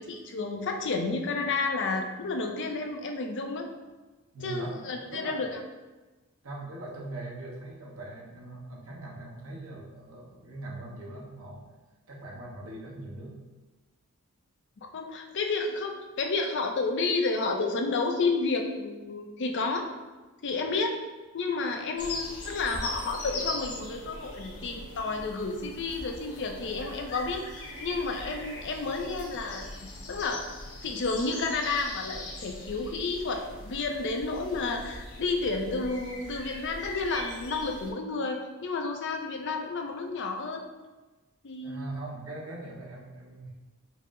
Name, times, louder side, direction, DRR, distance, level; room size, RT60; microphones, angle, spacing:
voice 1, 0.0-3.7 4.4-5.6 14.8-19.9 20.4-21.0 21.3-30.5 30.8-40.6 41.4-41.9, left 3 dB, 55° left, 4 dB, 0.5 m, -31 dB
voice 2, 4.3-5.5 6.4-11.7 12.1-13.4 41.6-43.5, right 2 dB, 65° right, -3 dB, 0.9 m, -41 dB
sound 1, 22.0-37.9, left 2 dB, 80° left, 0.8 m, -40 dB
4.6 x 2.0 x 3.6 m, 1.2 s
head